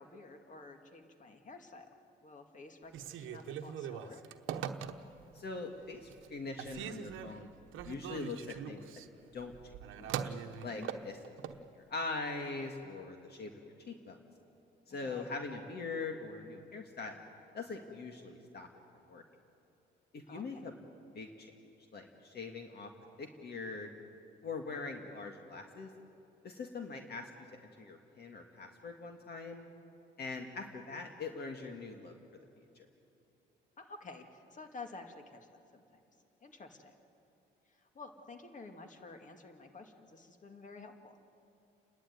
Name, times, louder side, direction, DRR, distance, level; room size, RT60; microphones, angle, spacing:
voice 1, 0.0-1.9 2.2-4.2 10.7-10.9 14.9-15.3 20.3-20.6 33.8-35.8 36.4-36.9 37.8-41.2, left 3 dB, 40° left, 5 dB, 2.2 m, -51 dB
Telephone, 2.9-5.3 5.8-6.3 6.6-11.6, right 8 dB, 85° right, 1.0 m, -42 dB
voice 2, 5.3-7.5 7.8-8.8 9.3-10.1 10.6-11.2 11.6-14.2 14.9-17.2 17.5-18.7 19.1-19.2 20.1-20.7 21.1-21.5 21.9-22.9 23.2-23.9 24.4-25.9 26.4-27.3 27.8-29.7 30.2-32.1 32.6-32.9, left 3 dB, 55° left, 3 dB, 2.0 m, -42 dB
30.0 x 11.5 x 9.3 m, 2.8 s
cardioid pair, 90°, 20 cm